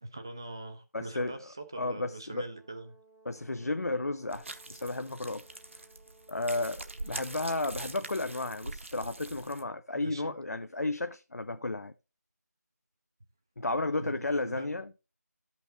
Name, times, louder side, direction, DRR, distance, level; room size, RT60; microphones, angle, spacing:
voice 1, 0.0-3.0 9.9-10.3 14.0-14.8, right 2 dB, 15° right, 0.5 m, -43 dB
voice 2, 0.9-1.4 1.8-2.4 3.2-5.4 6.3-11.9 13.6-14.9, left 2 dB, 65° left, 0.7 m, -33 dB
Brass instrument, 2.2-8.6, right 3 dB, 10° left, 1.0 m, -61 dB
sound 1, 4.3-9.6, right 2 dB, 45° right, 0.8 m, -43 dB
12.0 x 5.8 x 3.8 m
figure-of-eight pair, 170°, 9 cm